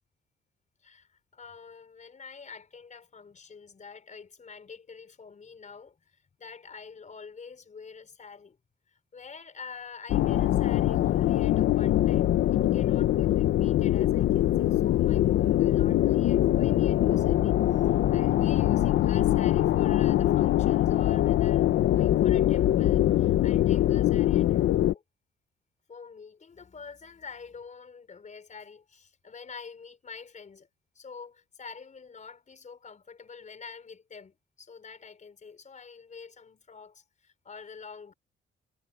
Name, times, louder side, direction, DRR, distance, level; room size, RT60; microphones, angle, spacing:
voice 1, 0.8-8.6 8.9-25.0 25.9-30.7 30.9-38.1, left 5 dB, 40° left, 5.1 m, -47 dB
sound 1, 10.1-24.9, left 13 dB, 75° left, 1.0 m, -23 dB
cardioid pair, 90°, 20 cm